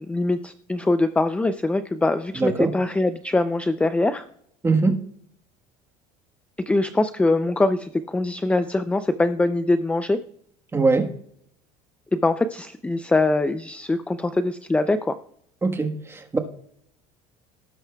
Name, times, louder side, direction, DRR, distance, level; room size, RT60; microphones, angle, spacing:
voice 1, 0.1-4.2 6.7-10.2 12.1-15.1, left 2 dB, 10° left, 11 dB, 0.5 m, -23 dB
voice 2, 2.3-2.7 4.6-5.0 10.7-11.1 15.6-16.4, right 3 dB, 15° right, 5 dB, 1.3 m, -22 dB
18.0 x 9.1 x 2.3 m, 0.67 s
supercardioid pair, 125°, 16 cm